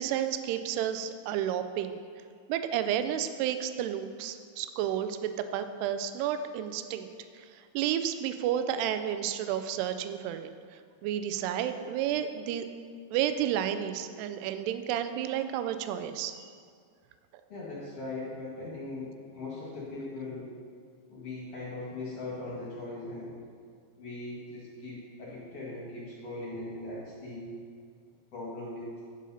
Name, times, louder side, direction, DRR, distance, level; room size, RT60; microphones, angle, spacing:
voice 1, 0.0-2.0 2.5-7.1 7.3-12.7 13.1-16.3, right 10 dB, 85° right, 10 dB, 2.4 m, -31 dB
voice 2, 17.5-20.5 21.1-23.3 24.0-27.5 28.3-28.9, left 2 dB, 45° left, -7 dB, 2.1 m, -39 dB
9.8 x 5.5 x 5.6 m, 2.1 s
omnidirectional pair, 5.1 m